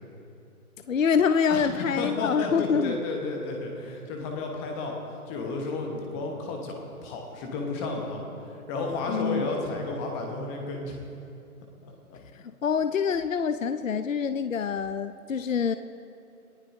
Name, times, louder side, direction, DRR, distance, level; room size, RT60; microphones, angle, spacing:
voice 1, 0.9-2.9 9.1-9.5 12.3-15.8, left 6 dB, 60° left, 11 dB, 0.7 m, -26 dB
voice 2, 1.5-5.0 5.3-11.0 11.8-12.2, left 3 dB, 10° left, 2 dB, 0.9 m, -32 dB
28.0 x 17.5 x 2.6 m, 2.7 s
figure-of-eight pair, 140°, 45 cm